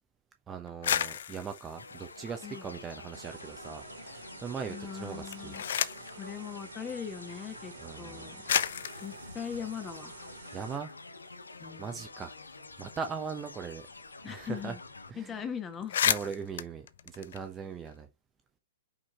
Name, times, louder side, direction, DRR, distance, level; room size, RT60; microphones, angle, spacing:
voice 1, 0.5-5.5 7.8-8.3 10.5-10.9 11.8-12.4 12.8-13.8 14.2-14.7 15.1-15.4 16.0-18.1, right 6 dB, 15° right, 0.8 m, -40 dB
sound 1, 0.7-3.2 3.6-4.3 5.1-6.2 7.2-7.3 8.0-8.1 8.5-10.8 11.1-11.2 11.5-14.1 14.4-14.5 14.8-15.0 15.4-15.5 15.7-17.9, left 9 dB, 55° left, 0.5 m, -34 dB
sound 2, 1.8-15.1, left 3 dB, 75° left, 0.8 m, -48 dB
sound 3, 3.1-10.8, right 6 dB, 60° right, 1.4 m, -50 dB
voice 2, 4.7-5.6 6.1-8.5 9.0-10.2 11.6-12.1 14.2-14.8 15.1-16.0, left 7 dB, 20° left, 1.5 m, -40 dB
5.5 x 5.1 x 4.5 m
figure-of-eight pair, 110°, 0 cm